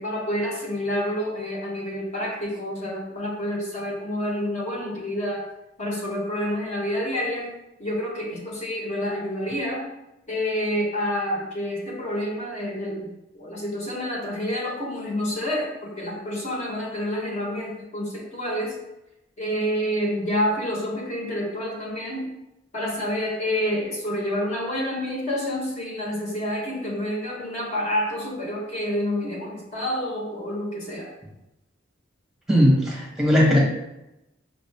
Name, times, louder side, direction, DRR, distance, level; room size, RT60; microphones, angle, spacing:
voice 1, 0.0-5.4 5.8-7.5 7.8-9.9 10.3-18.8 19.4-22.3 22.7-31.1, equal, 40° left, -2 dB, 1.1 m, -28 dB
voice 2, 32.5-33.6, equal, 5° right, -3 dB, 1.1 m, -18 dB
5.5 x 2.5 x 3.4 m, 0.90 s
head